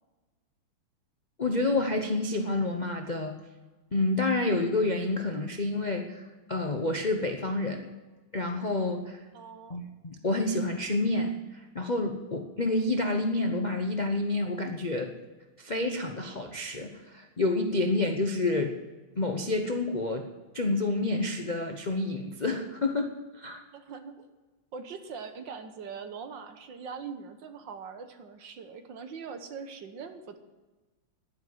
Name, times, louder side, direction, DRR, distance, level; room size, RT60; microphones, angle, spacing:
voice 1, 1.4-3.4 3.9-7.8 8.3-9.2 9.7-15.1 15.6-18.8 19.2-20.3 20.5-23.6, left 2 dB, 85° left, 4 dB, 0.4 m, -29 dB
voice 2, 9.3-9.8 23.7-24.3 24.7-30.4, right 5 dB, 60° right, 8 dB, 1.7 m, -42 dB
11.0 x 10.0 x 7.9 m, 1.2 s
omnidirectional pair, 2.4 m